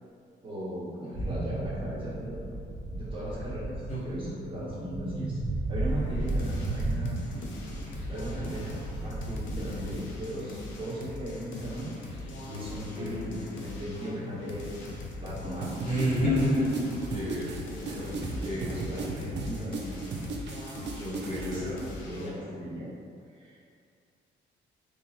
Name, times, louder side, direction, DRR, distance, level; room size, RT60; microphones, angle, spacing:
voice 1, 0.4-2.4 2.9-3.8 4.0-5.3 5.7-7.2 8.1-8.7 9.0-11.9 12.3-14.9 15.2-15.8 17.9-20.0 20.9-22.9 23.3-23.6, equal, 25° right, -9 dB, 1.4 m, -38 dB
sound 1, 1.1-10.0, right 2 dB, 5° left, 1.2 m, -34 dB
sound 2, 5.9-22.4, left 2 dB, 75° left, 0.6 m, -41 dB
voice 2, 12.9-13.4 15.8-17.5 17.9-18.0 18.4-18.9 21.2-21.7, equal, 40° left, -8 dB, 1.1 m, -29 dB
sound 3, 15.6-21.6, right 4 dB, 60° right, 0.5 m, -37 dB
3.8 x 3.0 x 2.8 m, 2.4 s
cardioid pair, 90°, 20 cm